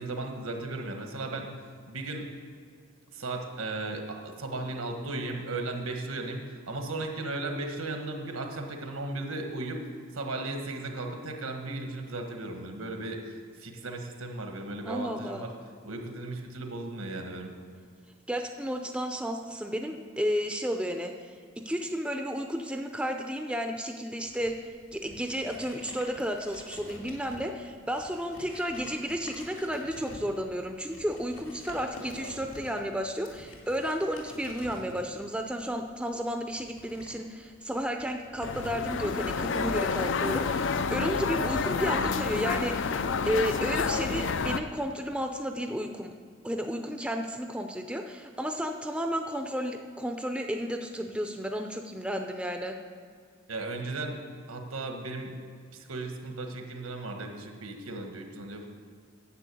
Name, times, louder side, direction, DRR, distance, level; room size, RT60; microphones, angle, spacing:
voice 1, 0.0-1.6 1.9-2.3 3.1-9.8 10.1-15.5 15.8-17.5 53.5-54.2 54.5-55.4 55.7-58.7, right 2 dB, 85° right, 4 dB, 1.5 m, -36 dB
voice 2, 14.8-15.4 18.3-42.8 43.3-46.1 46.4-52.8, equal, 5° right, 4 dB, 0.5 m, -32 dB
sound 1, 24.3-42.3, left 1 dB, 75° left, 2.2 m, -48 dB
sound 2, 38.4-44.6, left 5 dB, 60° left, 0.5 m, -29 dB
10.0 x 7.2 x 8.4 m, 2.1 s
head